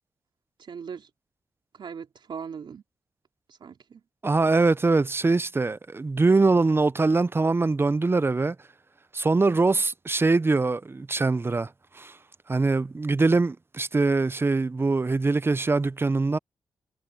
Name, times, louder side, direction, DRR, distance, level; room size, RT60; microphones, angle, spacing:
voice 1, 0.6-1.1 1.7-2.8 3.5-4.0, right 6 dB, 65° right, 3.3 m, -39 dB
voice 2, 4.2-8.6 9.1-11.7 11.9-12.2 12.5-16.4, right 3 dB, 25° right, 0.6 m, -23 dB
cardioid pair, 70°, 9 cm